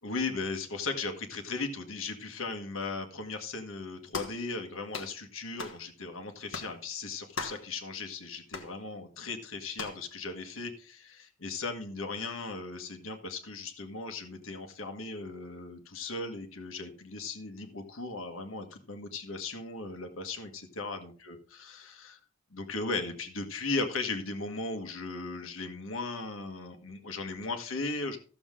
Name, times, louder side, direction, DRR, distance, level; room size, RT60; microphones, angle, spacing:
voice 1, 0.0-21.4 21.6-22.2 22.5-28.2, left 3 dB, 85° left, 5 dB, 1.6 m, -37 dB
sound 1, 4.1-4.4 4.9-5.2 5.6-5.8 6.5-6.7 7.4-7.7 8.5-8.7 9.8-10.0, left 4 dB, 70° left, 1.5 m, -38 dB
14.5 x 7.1 x 3.7 m, 0.40 s
head